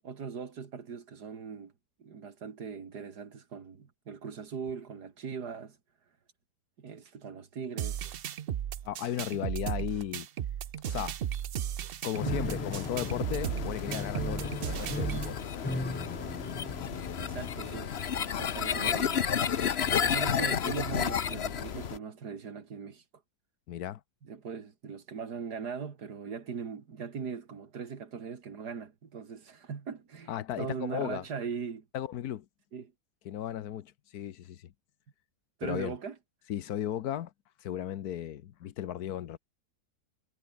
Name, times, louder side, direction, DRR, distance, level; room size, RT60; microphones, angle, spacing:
voice 1, 0.0-1.7 2.0-5.8 6.8-8.0 17.2-18.0 18.2-19.3 20.0-23.0 24.2-31.9 32.7-32.9 35.6-36.2, right 6 dB, 85° right, 2.6 m, -40 dB
sound 1, 7.8-15.3, right 10 dB, 60° right, 0.6 m, -35 dB
voice 2, 8.8-10.3 10.8-11.2 12.0-15.7 23.7-24.0 30.3-31.2 31.9-32.5 33.2-34.7 35.6-35.9 36.5-37.3 37.6-39.4, left 11 dB, 75° left, 1.3 m, -35 dB
sound 2, 12.1-22.0, left 8 dB, 45° left, 1.0 m, -32 dB
Piano, 12.2-18.1, left 2 dB, 15° left, 0.4 m, -38 dB
omnidirectional pair, 1.7 m